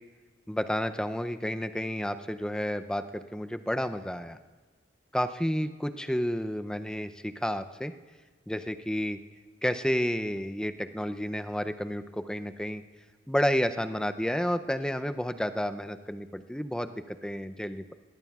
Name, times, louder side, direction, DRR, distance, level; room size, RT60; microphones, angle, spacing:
voice 1, 0.5-4.4 5.1-7.9 8.5-9.2 9.6-12.8 13.3-17.9, equal, 5° left, 9 dB, 0.5 m, -31 dB
21.5 x 18.0 x 2.4 m, 1.4 s
head